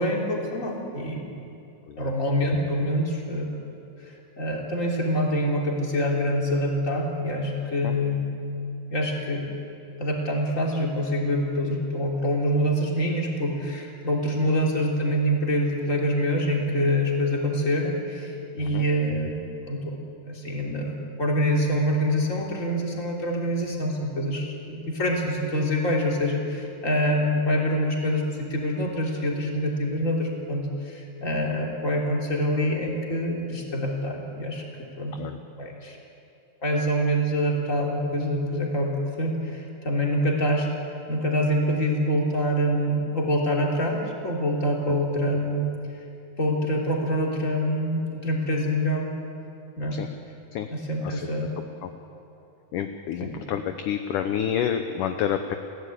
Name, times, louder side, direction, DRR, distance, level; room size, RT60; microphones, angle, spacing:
voice 1, 0.0-1.3 2.0-3.6 4.0-8.3 8.9-9.5 10.0-20.0 20.3-35.2 35.6-36.0 36.6-40.7 41.1-45.7 46.4-49.1 49.8-50.0 50.7-51.5 53.2-53.3, equal, 20° left, -1 dB, 3.1 m, -25 dB
voice 2, 52.7-55.6, left 9 dB, 75° left, 7 dB, 2.0 m, -28 dB
29.0 x 16.0 x 8.6 m, 2.7 s
omnidirectional pair, 4.6 m